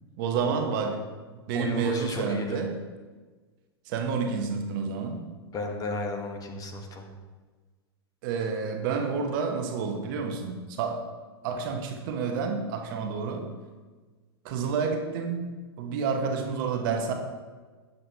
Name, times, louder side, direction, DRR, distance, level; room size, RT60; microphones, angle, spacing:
voice 1, 0.2-1.0 1.5-2.8 3.9-5.3 8.2-11.1 11.4-13.5 14.4-17.1, right 5 dB, 50° right, 4 dB, 0.9 m, -29 dB
voice 2, 1.5-2.6 5.5-7.1, left 3 dB, 25° left, 4 dB, 1.0 m, -34 dB
7.5 x 6.5 x 2.8 m, 1.4 s
hypercardioid pair, 100°, 14 cm